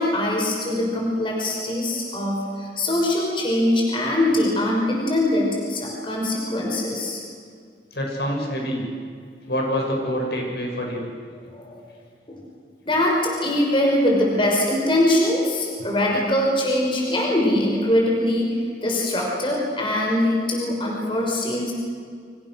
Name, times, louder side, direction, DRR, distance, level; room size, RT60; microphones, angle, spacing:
voice 1, 0.0-7.2 11.5-11.9 12.3-12.4 12.9-21.7, left 1 dB, 30° left, -1 dB, 5.7 m, -22 dB
voice 2, 7.9-8.8 9.5-11.1, equal, 70° left, 0 dB, 7.2 m, -26 dB
30.0 x 26.0 x 6.6 m, 2.1 s
head